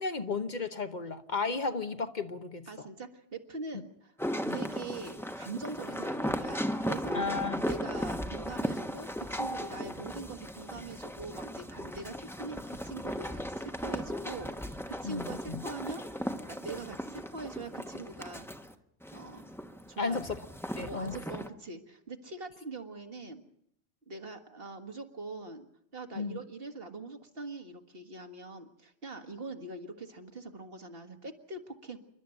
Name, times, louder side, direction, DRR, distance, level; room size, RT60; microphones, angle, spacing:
voice 1, 0.0-2.9 4.4-4.6 7.1-7.6 15.0-15.6 20.0-20.3 20.8-21.2 26.2-26.4, left 4 dB, 45° left, 9 dB, 1.1 m, -34 dB
voice 2, 2.7-4.2 4.5-7.3 7.7-18.5 19.1-19.5 19.9-20.2 20.8-23.4 24.1-25.7 25.9-32.0, right 3 dB, 60° right, 6 dB, 2.0 m, -43 dB
sound 1, 4.2-18.7 19.0-21.5, equal, ahead, 1.0 m, -37 dB
28.0 x 12.0 x 9.1 m, 0.72 s
omnidirectional pair, 1.1 m